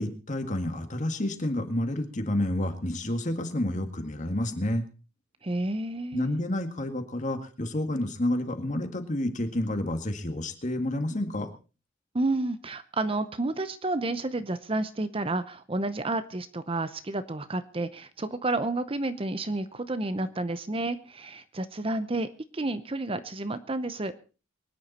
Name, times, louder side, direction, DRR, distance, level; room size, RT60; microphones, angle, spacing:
voice 1, 0.0-4.8 6.1-11.5, left 1 dB, 40° left, 7 dB, 1.9 m, -29 dB
voice 2, 5.4-6.4 12.1-24.1, right 2 dB, 30° right, 12 dB, 0.7 m, -30 dB
23.5 x 10.0 x 4.2 m, 0.35 s
head